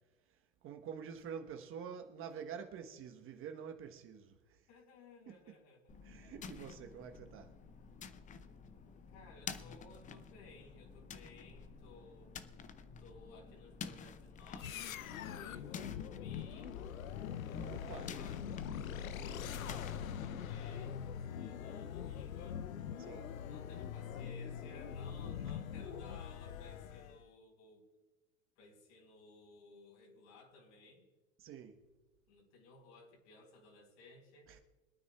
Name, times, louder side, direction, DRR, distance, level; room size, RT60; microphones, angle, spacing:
voice 1, 0.6-4.6 6.0-7.5 17.6-18.1 23.0-23.5 31.4-31.8 34.5-34.6, right 7 dB, 30° right, 1.2 m, -47 dB
voice 2, 4.7-6.0 9.1-12.3 13.0-16.8 17.8-22.9 23.4-27.9 28.6-31.1 32.3-34.5, left 3 dB, 55° left, 4.3 m, -59 dB
sound 1, 5.9-21.2, left 6 dB, 20° left, 0.6 m, -51 dB
sound 2, 14.6-27.2, left 8 dB, 80° left, 0.6 m, -43 dB
25.0 x 9.3 x 2.3 m
hypercardioid pair, 100°, 40 cm